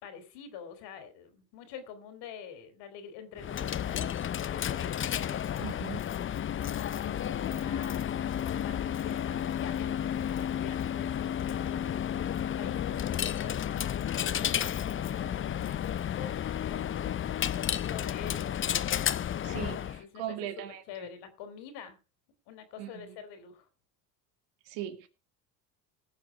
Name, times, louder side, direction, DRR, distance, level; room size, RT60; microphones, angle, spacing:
voice 1, 0.0-5.8 6.6-8.1 8.4-12.0 12.6-18.7 19.5-20.5 20.9-22.0 22.5-23.7, left 8 dB, 70° left, 9 dB, 3.4 m, -46 dB
Coin (dropping), 3.4-20.0, left 10 dB, 30° left, 0.6 m, -32 dB
voice 2, 5.6-6.0 19.4-21.1 22.8-23.1 24.7-25.1, right 12 dB, 75° right, 9 dB, 2.2 m, -39 dB
18.0 x 6.8 x 4.8 m, 0.32 s
supercardioid pair, 85°, 42 cm